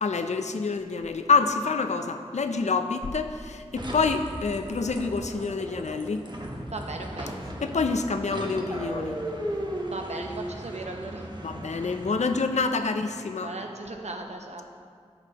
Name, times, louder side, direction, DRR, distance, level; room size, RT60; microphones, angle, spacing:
voice 1, 0.0-6.3 7.6-9.2 11.4-13.5, left 4 dB, 90° left, 7 dB, 0.4 m, -27 dB
sound 1, 3.8-12.5, right 1 dB, 40° right, 1.0 m, -36 dB
voice 2, 6.7-7.3 9.9-11.3 13.4-14.6, right 2 dB, 75° right, 3 dB, 0.8 m, -37 dB
10.5 x 7.0 x 2.9 m, 2.1 s
wide cardioid pair, 40°, 11 cm